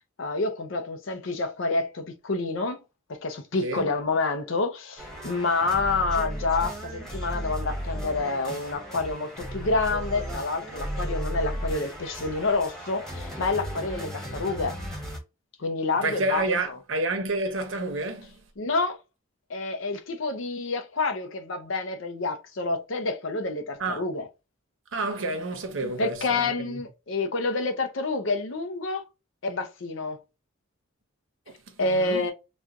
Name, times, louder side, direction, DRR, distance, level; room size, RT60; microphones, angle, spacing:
voice 1, 0.2-2.8 3.1-14.8 15.6-16.8 18.6-19.0 19.5-24.3 25.8-29.0 29.4-30.2 31.8-32.3, left 3 dB, 70° left, 0.6 m, -28 dB
sound 1, 5.0-15.2, equal, ahead, 1.1 m, -35 dB
voice 2, 16.0-18.4 23.8-24.0 24.9-26.7 31.5-31.6 31.8-32.2, right 2 dB, 75° right, 0.9 m, -29 dB
4.2 x 2.3 x 2.4 m
head